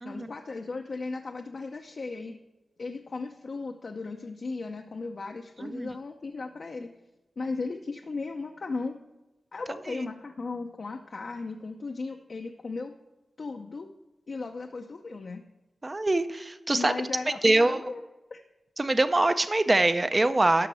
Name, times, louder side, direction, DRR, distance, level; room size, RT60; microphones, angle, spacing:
voice 1, 0.0-2.4 2.8-6.9 7.4-9.0 9.5-12.9 13.4-13.9 14.3-15.4 16.7-18.0 18.3-18.4, left 3 dB, 60° left, 3 dB, 0.7 m, -36 dB
voice 2, 15.8-16.9 17.4-17.8 18.8-20.7, right 2 dB, 30° right, 11 dB, 0.6 m, -24 dB
12.5 x 5.8 x 6.2 m, 1.0 s
wide cardioid pair, 70°, 0 cm